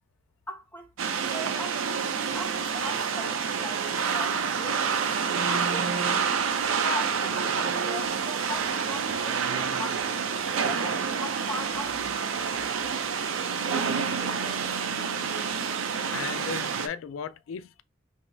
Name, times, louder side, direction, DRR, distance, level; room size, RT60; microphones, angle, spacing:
voice 1, 0.5-5.2 5.5-6.2 6.8-10.1 10.6-13.1 13.6-14.8, left 1 dB, 10° left, 0.9 m, -40 dB
sound 1, 1.0-16.9, right 6 dB, 80° right, 0.5 m, -28 dB
voice 2, 16.1-17.8, left 7 dB, 80° left, 0.3 m, -38 dB
3.1 x 2.8 x 3.3 m
head